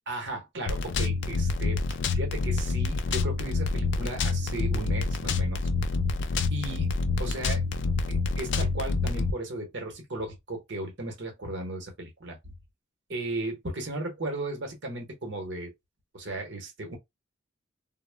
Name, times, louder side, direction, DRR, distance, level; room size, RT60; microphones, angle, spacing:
voice 1, 0.1-1.8 2.1-5.7 6.5-6.9 7.2-7.6 8.1-12.5 13.1-15.7 16.1-17.0, right 2 dB, 65° right, 0.9 m, -35 dB
sound 1, 0.7-9.3, left 4 dB, 65° left, 0.3 m, -27 dB
2.1 x 2.0 x 3.2 m
head